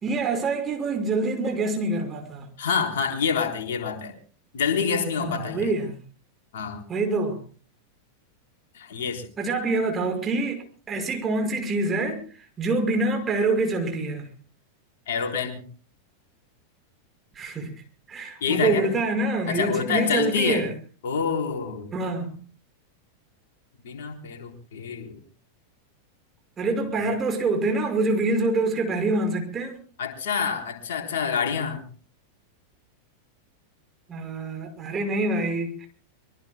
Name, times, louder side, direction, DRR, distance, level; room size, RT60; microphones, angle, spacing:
voice 1, 0.0-2.5 5.2-6.0 6.9-7.4 9.4-14.3 17.3-17.7 18.1-20.7 21.9-22.4 26.6-29.8 34.1-35.9, right 2 dB, 20° right, 5.5 m, -26 dB
voice 2, 2.6-4.1 4.5-5.7 6.5-6.8 8.7-9.3 15.1-15.6 18.4-18.9 19.5-20.6 21.0-21.9 23.8-25.2 30.0-31.8, left 6 dB, 60° left, 3.8 m, -27 dB
25.0 x 23.0 x 2.2 m
figure-of-eight pair, 90°, 0 cm